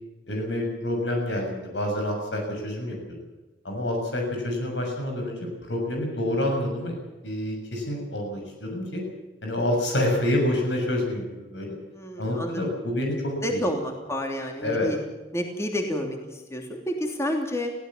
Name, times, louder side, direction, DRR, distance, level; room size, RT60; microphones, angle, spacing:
voice 1, 0.3-3.0 3.6-7.0 7.2-9.0 9.4-11.8 12.2-13.6 14.6-14.9, left 1 dB, 80° left, 1 dB, 6.6 m, -27 dB
voice 2, 11.9-12.6 13.4-15.0 15.3-17.7, equal, 15° left, 2 dB, 3.1 m, -29 dB
23.5 x 16.5 x 7.4 m, 1.2 s
head